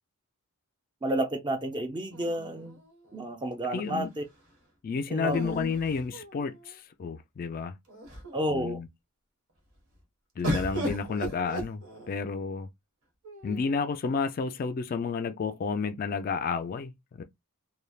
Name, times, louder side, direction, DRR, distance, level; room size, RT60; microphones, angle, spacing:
voice 1, 1.0-2.8 3.1-4.2 5.1-5.6 8.3-8.8, right 1 dB, 20° right, 0.5 m, -31 dB
sound 1, 2.1-3.2 5.2-6.7 7.5-7.6 7.9-8.5 10.4-12.3 13.2-13.9, equal, 70° right, 1.2 m, -36 dB
voice 2, 3.6-4.1 4.8-7.7 8.5-8.9 10.4-12.7 13.4-17.2, left 5 dB, 40° left, 0.3 m, -31 dB
3.2 x 2.2 x 2.3 m
head